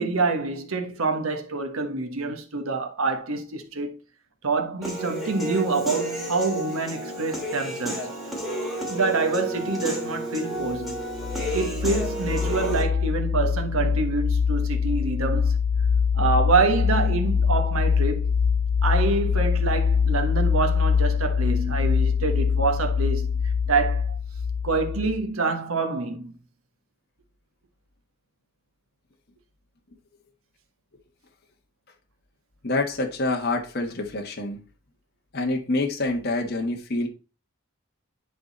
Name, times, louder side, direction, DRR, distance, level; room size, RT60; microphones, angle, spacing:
voice 1, 0.0-4.0 4.4-8.2 8.9-11.0 11.5-15.5 16.1-18.3 18.8-23.4 23.7-24.2 24.6-26.3, right 3 dB, 80° right, 1.3 m, -26 dB
Human voice / Piano, 4.8-12.8, right 1 dB, ahead, 2.6 m, -31 dB
sound 1, 10.7-25.2, left 6 dB, 75° left, 0.5 m, -24 dB
voice 2, 32.6-34.6 35.3-37.1, left 2 dB, 45° left, 1.3 m, -26 dB
10.5 x 4.0 x 4.0 m
head